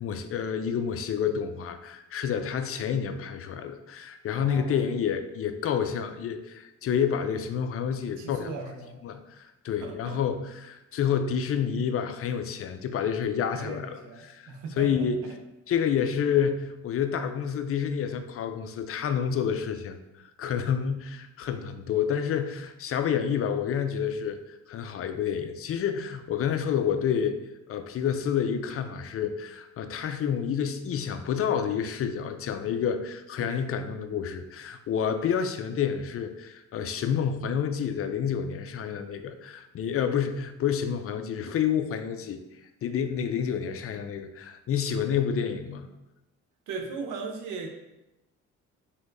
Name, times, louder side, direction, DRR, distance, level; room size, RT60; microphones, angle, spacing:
voice 1, 0.0-8.5 9.0-15.2 15.7-20.0 20.4-24.4 24.7-27.4 27.7-42.4 42.8-45.9, left 8 dB, 50° left, 8 dB, 0.4 m, -29 dB
voice 2, 4.3-4.8 8.2-9.0 9.8-10.2 13.5-15.3 33.4-33.8 46.7-47.7, right 4 dB, 90° right, 3 dB, 0.7 m, -38 dB
4.4 x 3.4 x 2.6 m, 0.94 s
cardioid pair, 90°, 30 cm